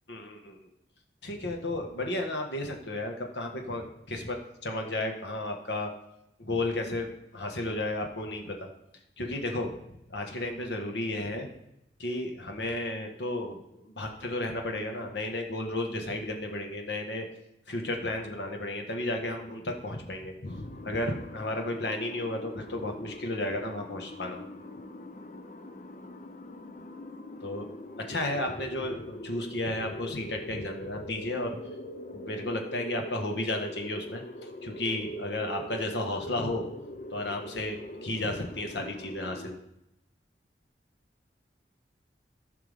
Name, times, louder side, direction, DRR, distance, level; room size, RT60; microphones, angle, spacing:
voice 1, 0.1-0.6 1.2-5.9 6.4-8.7 9.2-9.7 10.1-11.5 12.0-17.3 17.7-24.4 27.4-27.7 28.0-31.6 32.1-34.2 34.6-36.7 37.1-39.6, left 1 dB, 75° left, 3 dB, 1.5 m, -33 dB
sound 1, 20.4-39.6, left 1 dB, 45° left, 0.6 m, -43 dB
15.0 x 5.9 x 3.6 m, 0.84 s
head